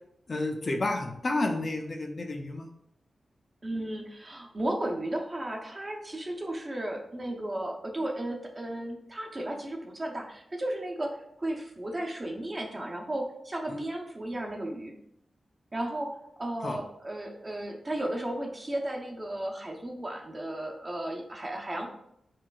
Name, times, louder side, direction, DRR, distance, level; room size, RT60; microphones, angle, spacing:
voice 1, 0.3-2.7 16.6-16.8, left 2 dB, 45° left, 3 dB, 0.5 m, -30 dB
voice 2, 3.6-14.9 15.7-21.9, right 1 dB, 30° right, 0 dB, 0.8 m, -34 dB
4.5 x 3.7 x 2.4 m, 0.75 s
wide cardioid pair, 85°, 0 cm